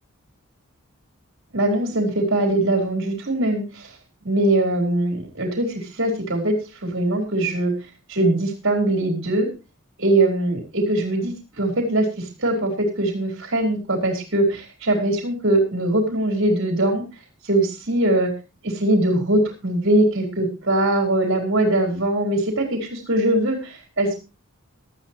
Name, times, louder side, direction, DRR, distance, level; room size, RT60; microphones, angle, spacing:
voice 1, 1.5-3.9 4.2-7.7 8.1-9.5 10.0-17.0 17.4-18.3 18.6-24.1, right 1 dB, 55° right, 2 dB, 4.7 m, -21 dB
18.5 x 13.0 x 3.1 m, 0.31 s
head